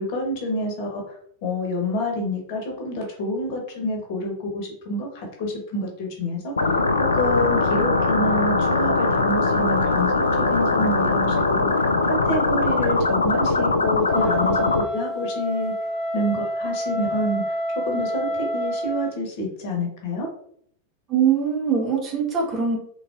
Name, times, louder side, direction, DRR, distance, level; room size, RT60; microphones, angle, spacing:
voice 1, 0.0-6.8 7.1-15.7 16.1-17.6 17.9-20.3, left 1 dB, 45° left, 1 dB, 1.2 m, -28 dB
sound 1, 6.6-14.8, left 3 dB, 75° left, 0.3 m, -21 dB
Wind instrument woodwind instrument, 14.1-19.1, equal, 20° left, 0.6 m, -28 dB
voice 2, 21.1-22.8, right 7 dB, 30° right, -1 dB, 1.3 m, -22 dB
3.8 x 3.8 x 2.5 m, 0.64 s
figure-of-eight pair, 90°, 0 cm